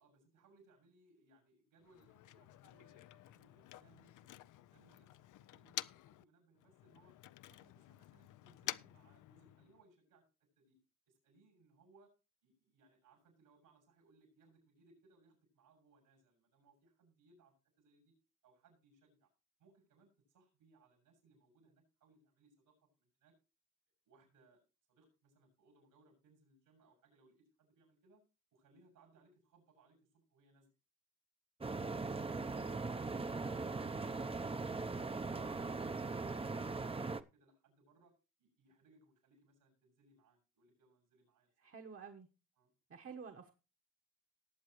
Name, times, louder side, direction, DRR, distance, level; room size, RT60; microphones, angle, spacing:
voice 1, 0.0-7.1 7.5-10.2 10.5-10.8 11.0-12.1 12.4-18.1 18.4-19.3 19.6-23.3 24.0-24.6 24.9-28.2 28.5-30.7 33.6-38.1 38.4-41.5 42.6-42.7, right 3 dB, 85° right, 1 dB, 6.8 m, -69 dB
Motor vehicle (road), 1.8-6.2 6.6-9.8, left 14 dB, 70° left, 0.5 m, -50 dB
sound 1, 31.6-37.2, right 3 dB, 20° right, 0.7 m, -40 dB
voice 2, 41.6-42.3 42.9-43.5, right 6 dB, 45° right, 3 dB, 1.3 m, -50 dB
19.0 x 7.7 x 3.1 m, 0.30 s
supercardioid pair, 65°, 32 cm